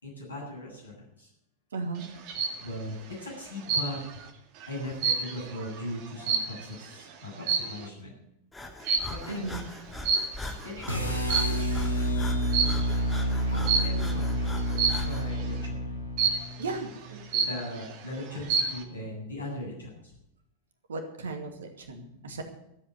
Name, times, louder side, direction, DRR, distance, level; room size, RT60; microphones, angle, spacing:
voice 1, 0.0-1.3 2.6-4.0 4.7-8.1 9.1-9.5 10.6-11.7 13.4-15.8 17.3-20.0, left 1 dB, 70° left, -1 dB, 7.8 m, -39 dB
voice 2, 1.7-2.1 9.3-9.7 16.6-17.5 20.9-22.4, right 3 dB, 65° right, 5 dB, 2.4 m, -36 dB
sound 1, 2.0-2.6 3.7-4.2 4.6-6.9 7.4-7.9 8.9-9.3 10.1-10.7 11.1-11.8 12.5-12.9 13.7-14.1 14.8-15.2 16.2-16.7 17.1-17.2 17.3-17.9 18.3-18.8, right 5 dB, 45° right, 1.9 m, -28 dB
Breathing, 8.5-15.3, left 2 dB, 10° left, 2.3 m, -41 dB
sound 2, 10.9-17.0, equal, 85° right, 2.4 m, -29 dB
13.5 x 8.6 x 9.3 m, 0.81 s
figure-of-eight pair, 90°, 0 cm